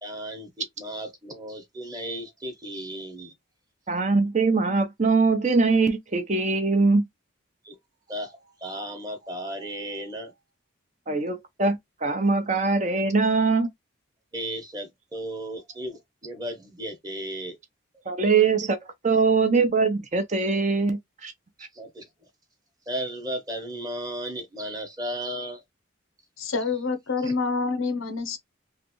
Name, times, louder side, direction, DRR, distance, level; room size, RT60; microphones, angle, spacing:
voice 1, 0.0-3.3 7.6-7.8 8.1-10.3 14.3-17.6 21.7-22.1 22.9-25.6 27.2-27.3, right 1 dB, 20° right, 1.0 m, -35 dB
voice 2, 3.9-7.0 11.1-13.7 18.1-18.8 19.0-21.3, right 4 dB, 35° right, 0.6 m, -22 dB
voice 3, 26.4-28.4, left 4 dB, 70° left, 0.8 m, -27 dB
3.3 x 2.5 x 3.0 m
head